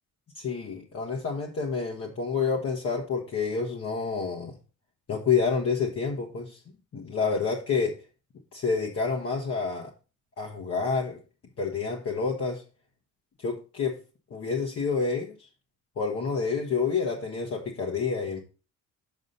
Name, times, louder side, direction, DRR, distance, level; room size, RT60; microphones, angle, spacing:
voice 1, 0.3-4.6 5.1-6.6 6.9-8.0 8.5-9.9 10.4-11.2 11.6-12.6 13.4-13.9 14.3-15.5 16.0-18.4, left 5 dB, 50° left, 1.3 m, -28 dB
7.3 x 5.3 x 4.0 m
cardioid pair, 90°, 30 cm